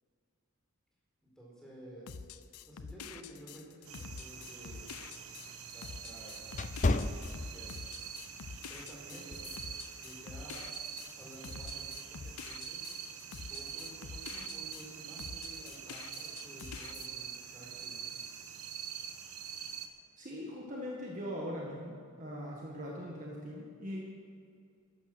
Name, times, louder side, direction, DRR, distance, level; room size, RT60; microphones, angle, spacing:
voice 1, 1.4-2.1 2.7-4.9 5.7-6.4 7.3-7.8 8.7-9.5 10.0-10.7 11.2-12.8 13.3-18.2, right 1 dB, 5° left, -5 dB, 4.5 m, -52 dB
sound 1, 2.1-14.9 15.2-17.1, left 6 dB, 80° left, 0.6 m, -47 dB
sound 2, 3.9-19.9, right 8 dB, 80° right, 1.2 m, -45 dB
sound 3, 4.3-8.0 8.5-8.7 9.3-9.6, left 2 dB, 35° left, 0.5 m, -34 dB
voice 2, 20.2-24.0, equal, 35° right, -3 dB, 1.7 m, -41 dB
14.5 x 11.5 x 6.2 m, 2.3 s
head